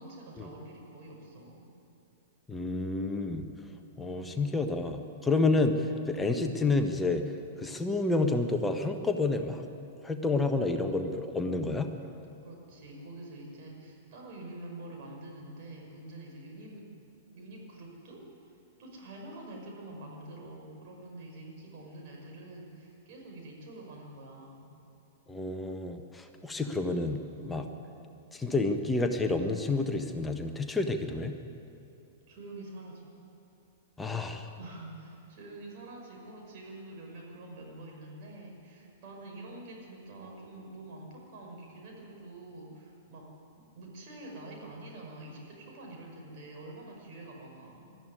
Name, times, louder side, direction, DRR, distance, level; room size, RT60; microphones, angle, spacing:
voice 1, 0.0-1.7 12.4-16.9 17.3-24.7 27.6-27.9 32.3-33.1 34.6-43.3 43.6-48.0, right 2 dB, 45° right, -1 dB, 6.0 m, -46 dB
voice 2, 2.5-3.4 4.0-7.3 7.6-9.6 10.0-11.9 25.3-27.7 28.3-31.4 34.0-34.5, left 3 dB, 10° left, 5 dB, 1.4 m, -29 dB
20.5 x 13.5 x 9.5 m, 2.8 s
figure-of-eight pair, 105°, 0 cm